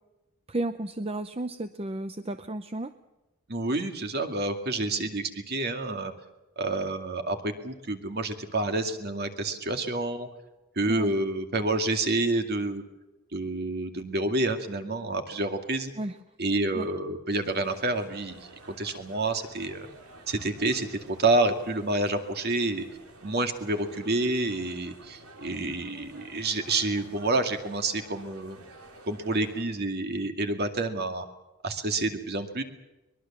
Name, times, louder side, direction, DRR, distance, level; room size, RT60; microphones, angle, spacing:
voice 1, 0.5-2.9 10.9-11.1 16.0-16.2 16.7-16.9, right 1 dB, 25° right, 10 dB, 0.7 m, -33 dB
voice 2, 3.5-6.1 6.6-10.3 10.8-12.8 13.3-15.9 16.4-18.4 18.8-19.9 20.3-22.9 23.2-28.6 29.1-31.2 31.6-32.6, right 2 dB, 50° right, 6 dB, 2.3 m, -28 dB
sound 1, 17.4-29.6, right 2 dB, 85° right, 3.9 m, -51 dB
23.0 x 21.5 x 7.3 m, 1.0 s
head